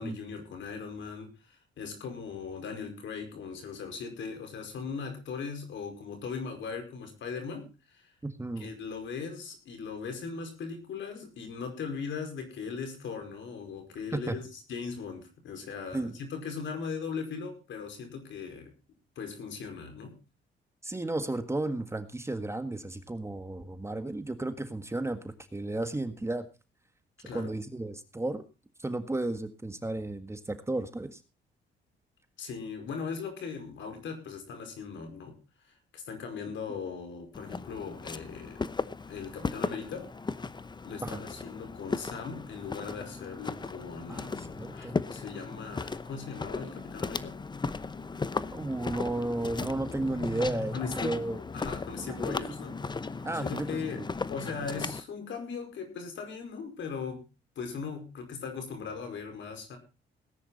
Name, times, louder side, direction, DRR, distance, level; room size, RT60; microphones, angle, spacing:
voice 1, 0.0-8.1 8.6-18.7 19.1-20.2 27.2-27.5 32.4-35.4 35.6-38.6 39.1-40.1 40.8-47.4 50.7-51.2 51.5-52.8 53.3-57.2 57.5-59.8, left 5 dB, 70° left, 5 dB, 5.1 m, -39 dB
voice 2, 8.2-8.7 14.1-14.4 15.9-16.1 20.8-26.4 27.3-28.4 28.8-31.2 41.0-41.2 44.1-44.9 48.5-51.4 52.1-52.4 53.2-54.1, right 2 dB, 15° right, 9 dB, 1.6 m, -33 dB
Walk footsteps, 37.3-55.0, left 4 dB, 20° left, 0.8 m, -36 dB
18.0 x 10.0 x 4.1 m, 0.31 s
cardioid pair, 90°, 20 cm